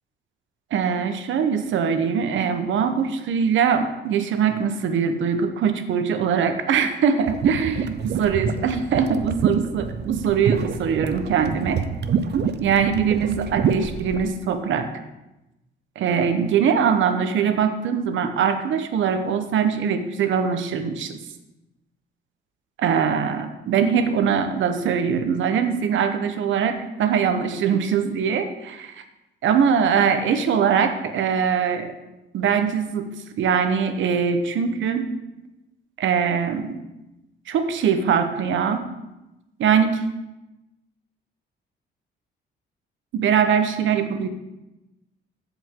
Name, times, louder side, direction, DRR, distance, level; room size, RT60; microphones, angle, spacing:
voice 1, 0.7-11.8 12.6-14.9 16.0-21.1 22.8-29.0 29.4-31.9 32.3-33.1 33.4-35.1 36.0-36.7 37.5-38.8 39.6-40.0 43.1-44.3, right 7 dB, 75° right, 8 dB, 1.0 m, -22 dB
sound 1, 7.3-14.3, right 7 dB, 60° right, 0.7 m, -26 dB
14.5 x 5.2 x 3.7 m, 0.98 s
cardioid pair, 90°, 20 cm